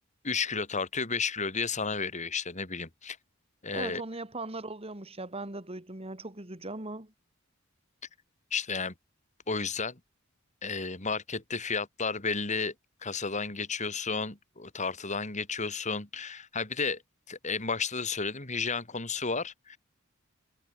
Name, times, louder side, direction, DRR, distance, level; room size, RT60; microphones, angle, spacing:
voice 1, 0.2-3.2 3.6-4.0 8.5-8.9 9.5-10.0 10.6-12.7 13.0-17.0 17.3-19.8, left 4 dB, 35° left, 3.3 m, -32 dB
voice 2, 3.7-7.1, right 2 dB, 30° right, 2.8 m, -39 dB
head